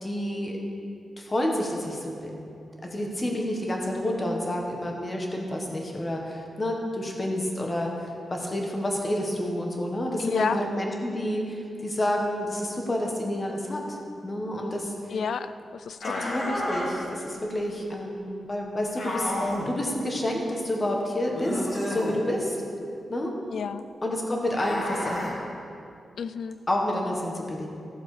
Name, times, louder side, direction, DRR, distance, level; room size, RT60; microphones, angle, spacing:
voice 1, 0.0-0.6 1.2-2.5 2.8-7.9 8.3-14.0 14.2-14.9 16.0-19.3 19.7-22.6 23.1-23.3 24.0-25.3 26.7-27.7, left 1 dB, 20° left, 0 dB, 1.4 m, -29 dB
voice 2, 10.2-10.6 15.1-16.3 23.5-23.8 26.2-26.6, left 6 dB, 65° left, 13 dB, 0.4 m, -31 dB
sound 1, 16.0-16.9 19.0-19.7 21.3-22.2 24.5-25.3, left 1 dB, 40° left, 2.2 m, -30 dB
14.5 x 7.3 x 5.0 m, 2.6 s
wide cardioid pair, 160°, 0 cm